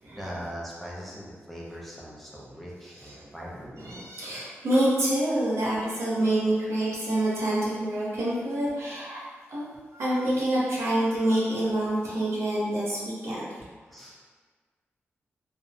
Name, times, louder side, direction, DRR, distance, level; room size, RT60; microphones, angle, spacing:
voice 1, 0.2-3.7 13.9-14.2, equal, ahead, -6 dB, 0.4 m, -40 dB
voice 2, 3.8-9.2 9.5-9.7 9.9-13.4, right 1 dB, 70° right, -7 dB, 0.7 m, -27 dB
2.6 x 2.0 x 2.5 m, 1.5 s
wide cardioid pair, 155°, 5 cm